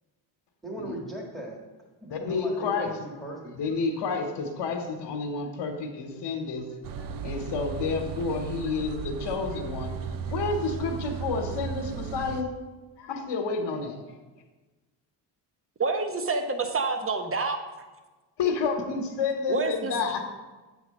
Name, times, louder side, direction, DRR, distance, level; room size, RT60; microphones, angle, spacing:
voice 1, 0.6-1.6 2.0-3.5, right 1 dB, ahead, -2 dB, 1.7 m, -38 dB
voice 2, 2.1-2.9 3.5-6.6 7.2-9.9 10.3-12.5 13.0-14.0 18.4-20.2, left 4 dB, 60° left, 1 dB, 1.2 m, -30 dB
sound 1, 6.8-12.4, right 6 dB, 45° right, 0.6 m, -35 dB
voice 3, 15.8-17.6 19.5-19.9, right 4 dB, 30° right, 6 dB, 1.1 m, -27 dB
8.1 x 3.6 x 6.3 m, 1.2 s
supercardioid pair, 75°, 47 cm